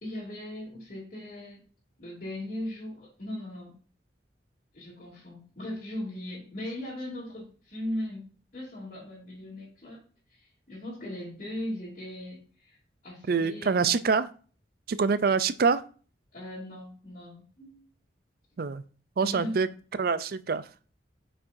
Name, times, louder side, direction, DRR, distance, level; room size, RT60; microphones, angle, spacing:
voice 1, 0.0-1.6 2.0-3.7 4.7-8.3 8.5-10.0 10.4-12.8 13.0-14.0 16.3-17.9 19.2-19.7, left 1 dB, 45° left, -8 dB, 2.9 m, -38 dB
voice 2, 13.3-14.3 14.9-15.8 18.6-18.8 19.2-19.7 20.0-20.6, right 5 dB, 55° right, 14 dB, 0.4 m, -25 dB
8.3 x 5.6 x 2.6 m, 0.39 s
head